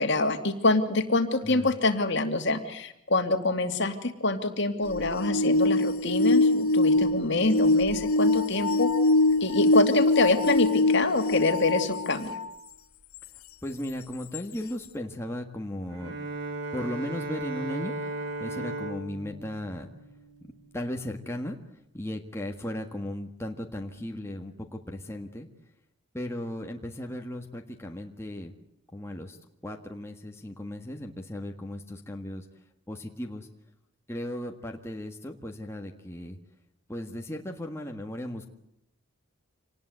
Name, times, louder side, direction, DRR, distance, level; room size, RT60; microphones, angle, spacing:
voice 1, 0.0-8.9 9.4-12.4, left 2 dB, 55° left, 7 dB, 2.6 m, -26 dB
sound 1, 4.9-12.5 13.2-13.3 14.3-14.4, left 2 dB, 85° left, 1.3 m, -24 dB
voice 2, 13.6-16.1 16.7-17.9 18.4-19.9 20.7-21.6 21.9-25.5 26.1-28.5 28.9-29.4 29.6-32.5 32.9-33.5 34.1-36.4 36.9-38.5, left 1 dB, 10° left, 2 dB, 1.7 m, -36 dB
Bowed string instrument, 15.9-20.8, right 2 dB, 55° right, 4.8 m, -36 dB
26.5 x 19.5 x 8.0 m, 0.79 s
head